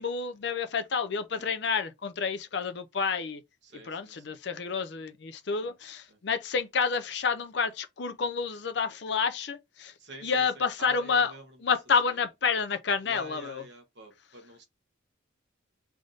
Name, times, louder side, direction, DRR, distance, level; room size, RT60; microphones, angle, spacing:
voice 1, 0.0-3.4 3.8-9.9 10.2-13.6, left 5 dB, 60° left, 0.5 m, -29 dB
voice 2, 3.6-4.2 5.6-5.7 6.1-6.2 10.0-11.4 13.0-14.7, right 2 dB, 60° right, 1.1 m, -48 dB
3.5 x 2.6 x 3.8 m
head